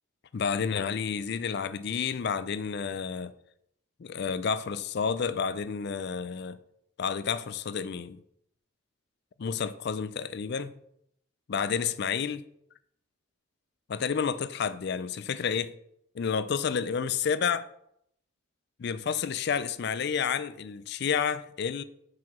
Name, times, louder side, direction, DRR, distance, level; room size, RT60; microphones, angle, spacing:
voice 1, 0.3-3.3 4.0-6.6 7.0-8.2 9.4-10.7 11.5-12.4 13.9-15.7 16.1-17.7 18.8-21.8, left 6 dB, 50° left, 0.4 m, -30 dB
5.6 x 4.9 x 6.0 m
head